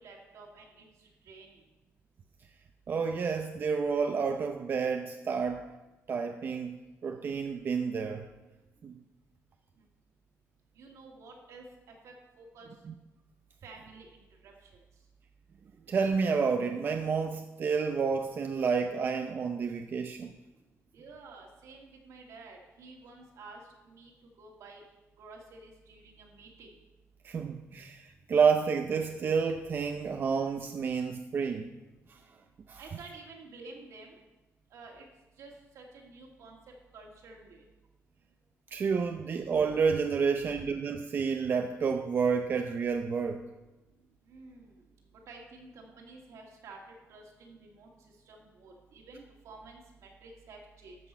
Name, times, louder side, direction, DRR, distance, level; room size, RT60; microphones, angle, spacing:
voice 1, 0.0-0.8 1.3-1.5 10.8-11.6 12.0-12.7 13.6-14.7 20.9-24.1 24.4-24.8 25.2-26.7 32.8-34.2 34.7-35.1 35.4-36.6 36.9-37.6 44.3-44.7 45.3-46.8 47.1-47.9 48.3-51.0, right 3 dB, 75° right, 0 dB, 2.4 m, -50 dB
voice 2, 2.9-5.7 6.1-6.8 7.0-8.3 8.8-9.0 12.9-13.0 15.9-20.3 27.2-31.7 32.1-32.2 32.7-32.8 38.7-43.4, right 5 dB, 40° right, 5 dB, 0.6 m, -29 dB
13.0 x 6.2 x 5.7 m, 1.1 s
cardioid pair, 160°, 5 cm